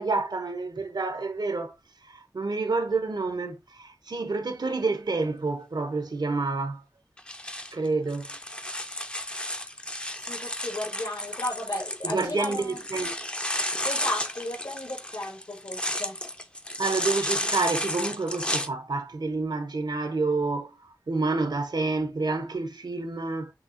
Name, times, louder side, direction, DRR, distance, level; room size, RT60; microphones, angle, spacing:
voice 1, 0.0-1.7 2.0-6.8 7.7-8.3 12.0-13.2 16.8-23.5, right 3 dB, 85° right, 0.9 m, -29 dB
sound 1, 7.2-18.7, left 1 dB, 15° left, 0.5 m, -32 dB
voice 2, 10.2-12.8 13.8-16.2, left 1 dB, 70° left, 2.1 m, -34 dB
6.0 x 2.8 x 2.7 m
wide cardioid pair, 60°, 7 cm